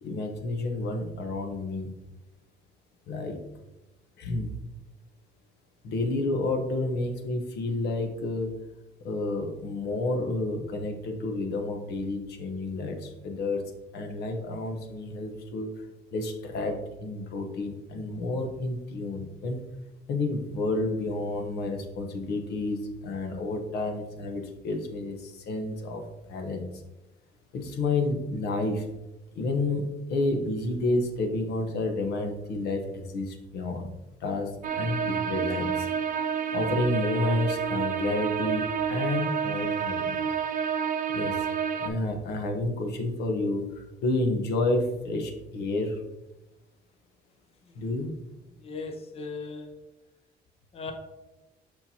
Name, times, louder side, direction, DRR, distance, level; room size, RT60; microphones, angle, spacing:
voice 1, 0.0-1.9 3.1-3.4 4.2-4.5 5.8-8.6 9.0-13.6 13.9-15.7 16.1-19.6 20.1-26.0 26.3-26.6 27.5-28.9 29.3-33.9 34.2-35.9 36.5-40.2 41.1-41.5 41.8-46.0 47.7-48.1, left 2 dB, 75° left, 3 dB, 1.1 m, -30 dB
sound 1, 34.6-41.9, right 7 dB, 50° right, 0.7 m, -29 dB
voice 2, 48.7-49.6 50.8-50.9, left 4 dB, 35° left, 4 dB, 0.8 m, -37 dB
6.7 x 5.9 x 2.8 m, 1.0 s
cardioid pair, 110°, 17 cm